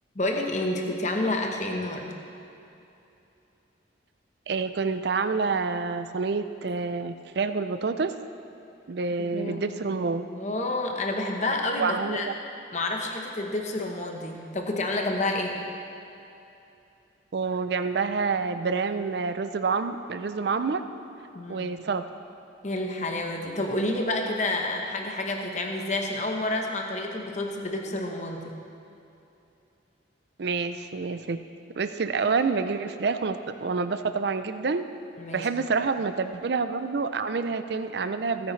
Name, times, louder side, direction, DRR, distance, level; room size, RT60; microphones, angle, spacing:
voice 1, 0.1-2.1 9.2-9.8 10.3-12.3 12.7-15.6 21.3-21.7 22.6-28.5 35.2-35.5, left 2 dB, 40° left, 2 dB, 0.9 m, -29 dB
voice 2, 4.5-8.1 8.9-10.2 11.8-12.3 17.3-20.8 21.5-22.0 30.4-31.4 31.8-34.8 35.3-38.5, right 4 dB, 60° right, 10 dB, 0.4 m, -28 dB
16.0 x 9.3 x 3.2 m, 2.9 s
head